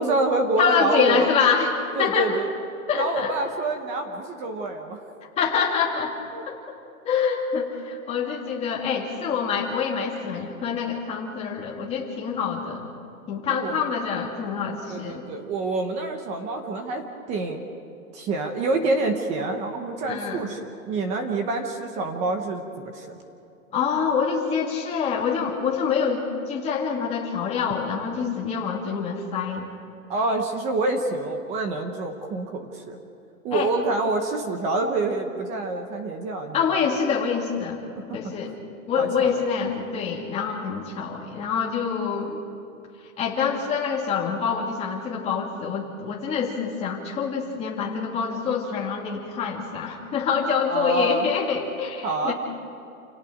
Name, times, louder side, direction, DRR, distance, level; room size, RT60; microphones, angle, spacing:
voice 1, 0.0-1.3 1.9-2.5 2.9-5.0 6.3-6.4 13.5-13.8 14.9-17.6 18.1-20.6 20.9-23.2 30.1-33.0 33.4-36.6 38.2-38.5 39.0-39.4 50.7-51.3 52.0-52.3, right 2 dB, 15° right, 5 dB, 0.9 m, -27 dB
voice 2, 0.6-1.7 2.0-2.4 2.9-3.3 5.4-6.1 6.5-6.6 7.0-12.9 13.3-15.2 20.1-20.4 23.7-29.7 33.5-33.7 36.5-37.8 38.1-38.5 38.9-42.4 43.2-52.3, left 6 dB, 15° left, -2 dB, 2.4 m, -26 dB
28.5 x 18.0 x 5.1 m, 2.7 s
hypercardioid pair, 170°, 43 cm